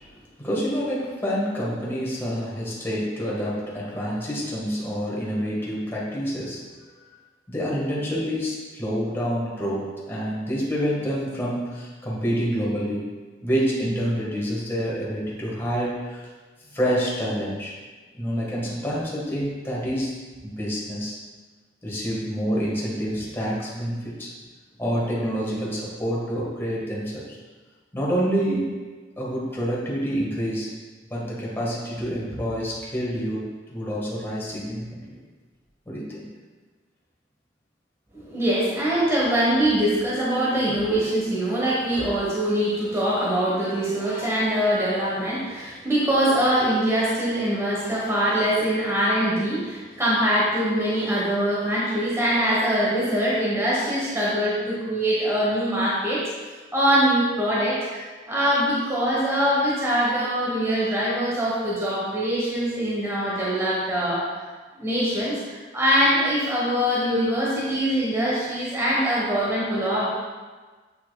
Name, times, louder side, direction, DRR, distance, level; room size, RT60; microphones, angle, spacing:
voice 1, 0.0-6.6 7.5-13.1 13.4-16.3 16.7-17.7 18.1-20.2 20.4-21.1 21.8-24.3 24.8-27.4 27.9-28.8 29.2-30.7 31.1-35.2 35.9-36.3, equal, 15° left, -6 dB, 1.4 m, -27 dB
voice 2, 38.1-56.2 56.7-64.2 64.8-70.1, equal, 15° right, -7 dB, 1.1 m, -23 dB
8.2 x 5.7 x 2.3 m, 1.4 s
head